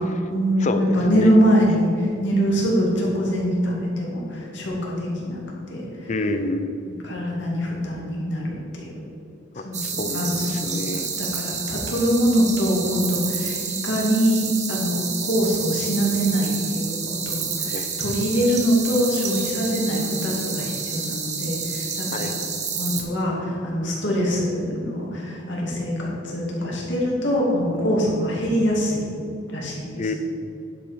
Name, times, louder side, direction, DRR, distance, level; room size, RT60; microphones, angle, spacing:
voice 1, 0.0-0.7 0.9-5.4 5.7-6.1 6.9-8.9 9.5-22.3 22.7-29.1 29.5-30.1, equal, 65° left, -3 dB, 2.4 m, -23 dB
voice 2, 0.6-1.3 6.1-6.8 9.6-11.1 17.7-17.9 22.1-22.3 30.0-30.1, left 2 dB, 35° left, 7 dB, 0.6 m, -28 dB
sound 1, 9.7-23.0, right 6 dB, 35° right, 1.0 m, -29 dB
10.5 x 5.3 x 5.7 m, 2.5 s
head